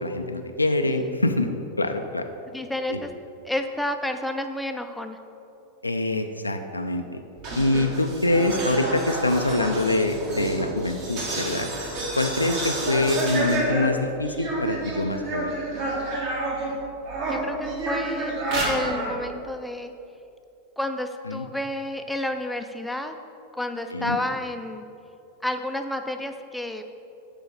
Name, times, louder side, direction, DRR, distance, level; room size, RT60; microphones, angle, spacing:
voice 1, 0.0-1.5 1.8-2.3 2.9-3.0 5.8-7.2 7.6-11.7 12.2-15.5 21.3-21.5 23.9-24.2, left 2 dB, 85° left, 6 dB, 0.4 m, -25 dB
voice 2, 2.5-3.1 3.4-5.2 17.3-18.4 18.6-19.9 20.8-23.2 23.5-24.8 25.4-26.8, left 1 dB, 5° left, 6 dB, 0.5 m, -30 dB
sound 1, 7.4-16.7 17.0-19.1, right 2 dB, 50° right, 1.8 m, -29 dB
6.9 x 4.6 x 5.8 m, 2.7 s
figure-of-eight pair, 90°, 0 cm